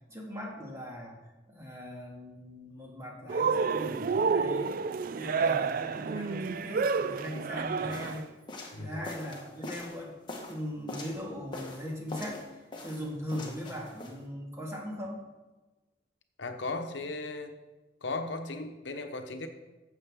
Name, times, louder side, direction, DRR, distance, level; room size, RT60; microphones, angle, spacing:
voice 1, 0.1-1.2 1.5-4.8 5.1-8.3 8.8-10.2 10.5-12.4 12.8-15.2, equal, 15° right, -2 dB, 1.9 m, -39 dB
Cheering, 3.3-8.2, right 5 dB, 50° right, 0.3 m, -29 dB
sound 1, 7.9-11.2 11.5-12.5 12.7-14.2, left 2 dB, 25° left, 1.4 m, -43 dB
voice 2, 8.7-9.1 16.4-17.5 18.0-19.5, left 3 dB, 75° left, 7 dB, 0.9 m, -36 dB
12.5 x 7.8 x 3.6 m, 1.1 s
head